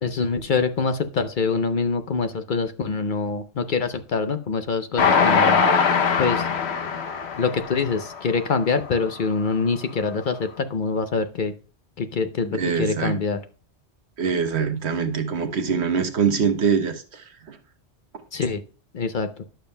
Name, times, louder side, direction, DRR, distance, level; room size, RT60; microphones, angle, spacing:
voice 1, 0.0-5.6 6.2-6.4 7.4-11.5 12.0-13.4 18.3-18.6 18.9-19.3, left 4 dB, 55° left, 8 dB, 0.7 m, -25 dB
Train, 5.0-8.4 8.9-9.0 9.3-9.4, left 5 dB, 70° left, 1.0 m, -21 dB
voice 2, 12.5-13.2 14.2-17.6, right 6 dB, 70° right, 6 dB, 1.2 m, -24 dB
11.5 x 6.9 x 2.2 m, 0.36 s
omnidirectional pair, 1.2 m